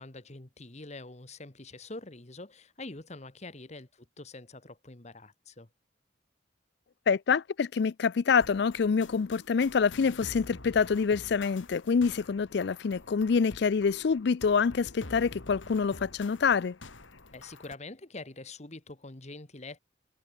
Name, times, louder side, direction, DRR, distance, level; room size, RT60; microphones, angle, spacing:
voice 1, 0.0-5.7 17.3-19.8, left 2 dB, 35° left, 1.4 m, -45 dB
voice 2, 7.1-16.7, left 5 dB, 60° left, 0.4 m, -26 dB
sound 1, 8.4-17.8, left 2 dB, 85° left, 2.6 m, -48 dB
head